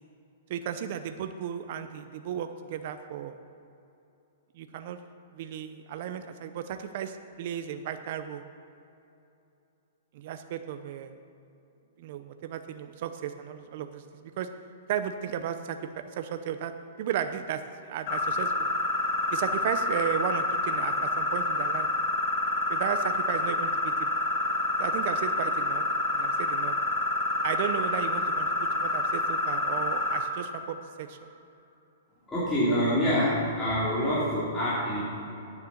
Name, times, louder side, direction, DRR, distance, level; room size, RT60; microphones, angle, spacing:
voice 1, 0.5-3.4 4.6-5.0 5.3-8.4 10.1-11.2 12.0-14.5 14.9-15.8 16.2-16.7 17.0-17.6 17.9-18.7 19.3-21.9 22.7-24.2 24.8-25.8 26.1-26.8 27.4-31.3, right 9 dB, 50° right, 8 dB, 0.5 m, -34 dB
sound 1, 18.1-30.2, left 2 dB, 40° left, 1.7 m, -28 dB
voice 2, 32.3-35.0, equal, 10° left, -12 dB, 2.8 m, -26 dB
9.6 x 6.6 x 7.1 m, 2.8 s
hypercardioid pair, 150°, 0 cm